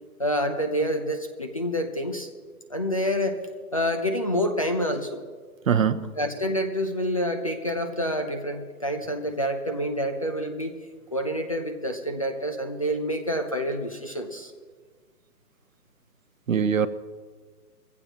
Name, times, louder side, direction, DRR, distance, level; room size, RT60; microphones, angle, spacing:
voice 1, 0.2-2.3 2.7-3.4 3.7-5.2 6.2-10.8 11.1-14.5, equal, 25° left, 0.6 m, -27 dB
voice 2, 5.7-6.1 16.5-16.9, right 7 dB, 55° right, 0.9 m, -22 dB
22.5 x 15.5 x 3.0 m
hypercardioid pair, 160°, 47 cm